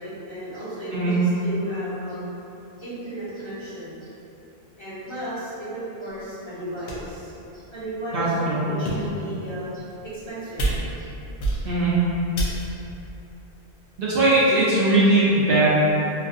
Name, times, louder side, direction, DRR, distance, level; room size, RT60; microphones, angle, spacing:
voice 1, 0.0-2.3 2.8-4.1 4.8-8.3 8.6-10.7 11.0-11.1 11.5-11.6 12.7-12.8, right 1 dB, 25° left, -14 dB, 0.9 m, -35 dB
sound 1, 6.2-6.3 6.9-7.2 7.9-8.0 8.7-9.2 9.9-10.3 10.6-11.1 11.4-11.9 12.4-12.9, right 2 dB, 80° left, 0.9 m, -28 dB
voice 2, 8.1-8.6 11.6-11.9 14.0-15.7, right 2 dB, 60° right, -9 dB, 0.7 m, -19 dB
3.1 x 2.5 x 2.5 m, 3.0 s
omnidirectional pair, 1.2 m